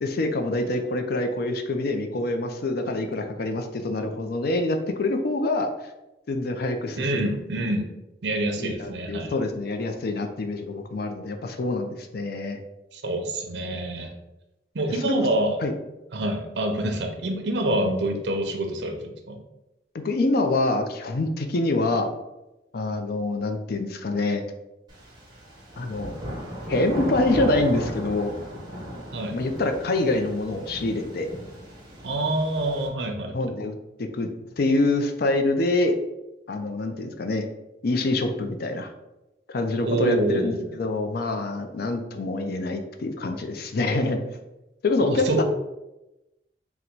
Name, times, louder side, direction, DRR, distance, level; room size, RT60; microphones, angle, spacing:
voice 1, 0.0-5.7 6.3-7.3 8.6-12.6 14.9-15.3 15.6-15.7 20.0-22.1 22.7-24.4 25.8-26.2 26.7-28.4 29.3-31.3 33.3-34.3 34.6-36.0 36.5-37.4 37.8-38.9 39.5-44.2 44.8-45.4, left 2 dB, 60° left, 6 dB, 0.5 m, -26 dB
voice 2, 7.0-7.9 8.2-9.4 12.9-14.1 14.7-15.6 16.1-19.4 29.1-29.4 32.0-33.5 39.9-40.7 45.0-45.4, right 1 dB, 70° right, 4 dB, 0.6 m, -26 dB
sound 1, 24.9-32.9, equal, 25° right, 1.0 m, -35 dB
3.9 x 2.2 x 4.4 m, 0.96 s
head